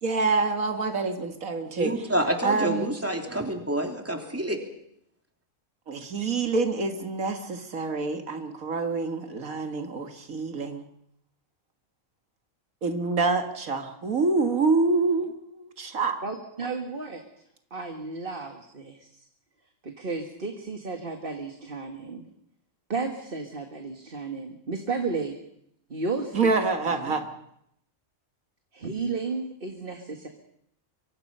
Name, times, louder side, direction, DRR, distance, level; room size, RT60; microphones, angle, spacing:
voice 1, 0.0-1.9 2.4-2.9 5.9-10.8 12.8-16.2 26.3-27.3, right 3 dB, 85° right, 6 dB, 2.2 m, -26 dB
voice 2, 1.8-4.6, right 1 dB, 10° right, 3 dB, 3.0 m, -28 dB
voice 3, 16.2-17.2 17.7-19.2 19.8-22.2 22.9-25.4 25.9-26.5 26.8-27.2 28.7-30.3, right 4 dB, 40° right, 4 dB, 1.9 m, -33 dB
24.5 x 24.5 x 5.6 m, 0.75 s
omnidirectional pair, 1.4 m